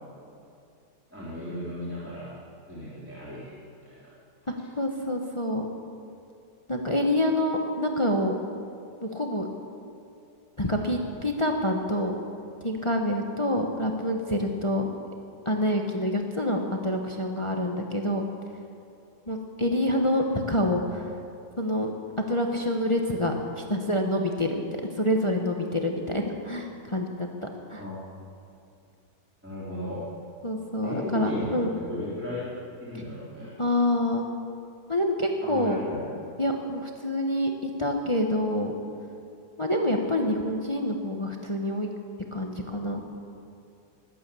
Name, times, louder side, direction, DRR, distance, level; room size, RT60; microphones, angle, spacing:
voice 1, 1.1-2.3 2.7-3.5 3.8-4.1 27.8-28.0 29.4-30.0 30.8-32.5 32.8-33.5 35.4-36.0, left 1 dB, 5° right, -10 dB, 3.6 m, -35 dB
voice 2, 4.5-5.7 6.7-8.3 9.0-9.5 10.6-12.1 12.6-14.9 15.4-18.2 19.3-21.1 21.6-21.9 22.3-27.3 27.7-27.8 30.4-31.7 33.6-34.3 34.9-35.8 36.4-38.8 39.6-41.9 42.3-43.0, left 1 dB, 20° left, 3 dB, 0.9 m, -27 dB
19.5 x 8.7 x 8.4 m, 2.5 s
omnidirectional pair, 1.8 m